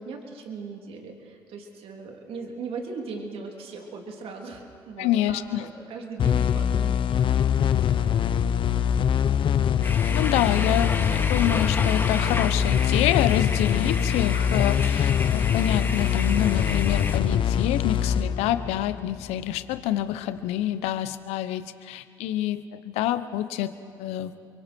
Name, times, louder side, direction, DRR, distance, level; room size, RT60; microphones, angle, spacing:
voice 1, 0.0-7.1 7.5-8.2, right 4 dB, 60° right, 1 dB, 3.3 m, -39 dB
voice 2, 5.0-5.7 10.1-24.3, left 12 dB, 75° left, 12 dB, 1.1 m, -27 dB
sound 1, 6.2-19.5, left 8 dB, 50° left, 0.9 m, -23 dB
sound 2, 9.8-17.2, left 3 dB, 20° left, 2.2 m, -33 dB
30.0 x 23.5 x 4.6 m, 2.5 s
supercardioid pair, 65°, 11 cm